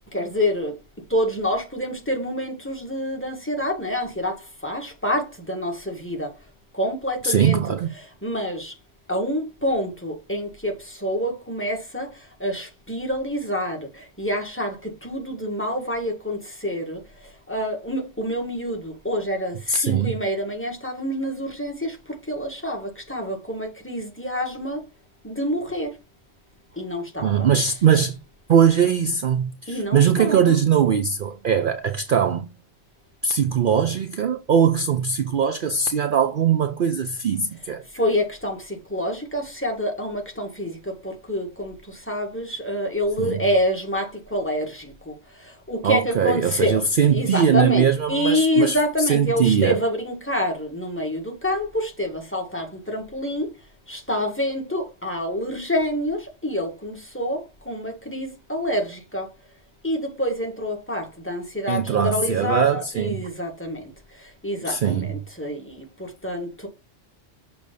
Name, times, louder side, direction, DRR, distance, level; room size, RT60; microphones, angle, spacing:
voice 1, 0.1-0.7 1.1-6.3 6.7-7.6 8.2-8.7 9.1-24.8 25.2-25.9 26.7-27.4 29.7-30.6 37.9-53.5 53.9-59.3 59.8-63.9 64.2-66.7, equal, 10° left, 1.6 m, -27 dB
voice 2, 7.2-7.9 19.7-20.2 27.2-28.2 28.5-32.5 33.2-37.8 43.2-43.4 45.8-49.8 61.7-63.2 64.6-65.1, right 7 dB, 55° right, 0.7 m, -21 dB
6.6 x 3.4 x 5.2 m
omnidirectional pair, 1.2 m